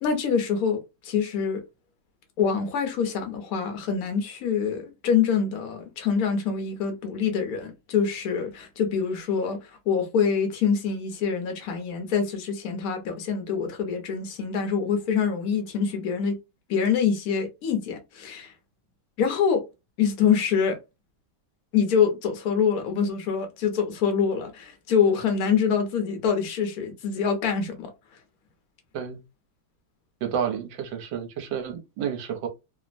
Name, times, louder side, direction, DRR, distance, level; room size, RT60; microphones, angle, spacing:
voice 1, 0.0-1.6 2.4-16.4 16.7-18.5 19.2-19.7 20.0-20.8 21.7-27.9, left 6 dB, 60° left, 1.0 m, -25 dB
voice 2, 30.2-32.5, right 8 dB, 70° right, 1.4 m, -30 dB
3.3 x 2.0 x 2.4 m
omnidirectional pair, 2.2 m